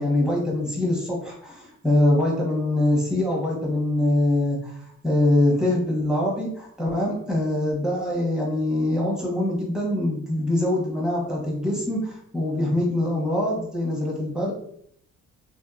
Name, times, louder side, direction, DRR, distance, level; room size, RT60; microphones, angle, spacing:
voice 1, 0.0-14.5, left 1 dB, ahead, -3 dB, 1.0 m, -24 dB
3.2 x 2.7 x 2.4 m, 0.66 s
cardioid pair, 90°, 30 cm